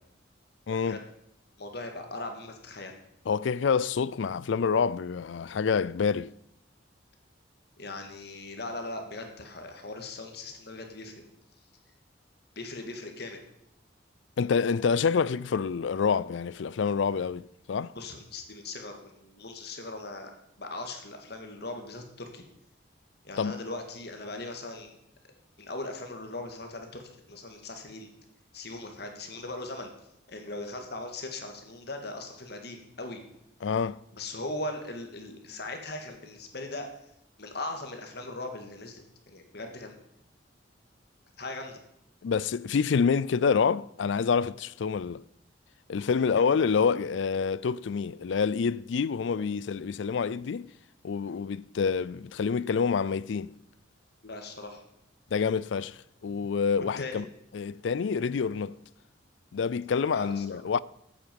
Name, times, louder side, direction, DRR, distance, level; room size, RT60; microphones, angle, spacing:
voice 1, 0.7-1.0 3.3-6.3 14.4-17.9 23.4-23.6 33.6-34.0 42.2-45.2 45.9-50.7 51.0-53.5 55.3-57.3 57.5-58.8 59.5-60.8, left 6 dB, 70° left, 0.4 m, -27 dB
voice 2, 1.6-2.9 7.8-11.2 12.6-13.4 18.0-20.3 20.6-22.4 23.2-25.0 25.6-28.1 28.5-29.9 30.3-33.2 34.1-36.9 37.4-39.9 41.4-41.8 46.4-46.5 54.2-54.8 57.0-57.2 60.1-60.4, left 2 dB, 55° left, 1.9 m, -39 dB
14.0 x 8.6 x 5.3 m
head